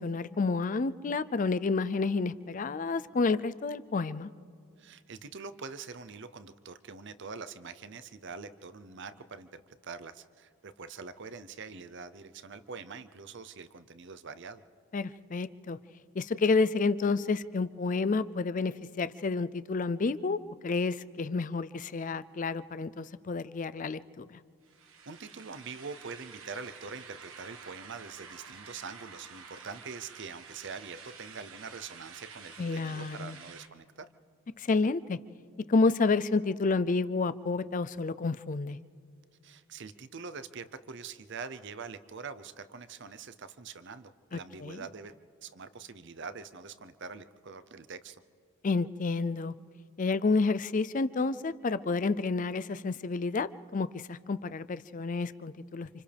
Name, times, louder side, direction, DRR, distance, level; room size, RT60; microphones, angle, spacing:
voice 1, 0.0-4.3 14.9-15.8 16.1-24.4 32.6-33.4 34.6-35.2 35.7-38.8 44.3-44.8 48.6-49.5 50.0-55.9, left 4 dB, 35° left, 14 dB, 0.4 m, -30 dB
voice 2, 4.8-14.6 25.1-34.1 39.4-45.1 45.4-48.2, right 5 dB, 55° right, 12 dB, 0.7 m, -44 dB
sound 1, 24.6-33.7, right 5 dB, 70° right, 1.4 m, -50 dB
29.5 x 27.5 x 3.5 m, 2.4 s
head